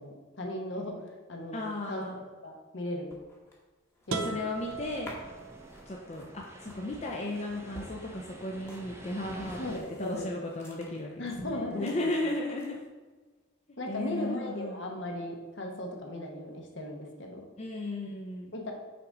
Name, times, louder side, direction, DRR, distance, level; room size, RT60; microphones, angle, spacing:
voice 1, 0.0-3.1 4.1-4.4 9.4-10.3 11.2-12.2 13.8-17.4 18.5-18.7, left 1 dB, 60° left, 1 dB, 1.0 m, -37 dB
voice 2, 1.5-2.2 4.1-5.1 5.9-12.8 13.9-14.8 17.6-18.5, left 2 dB, 35° left, -1 dB, 0.5 m, -35 dB
sound 1, 2.9-11.4 11.6-12.9, equal, 15° left, 1.0 m, -52 dB
sound 2, 4.1-6.0, right 4 dB, 90° right, 0.6 m, -38 dB
sound 3, 4.5-9.8, right 1 dB, 15° right, 0.6 m, -48 dB
5.8 x 3.9 x 4.8 m, 1.3 s
head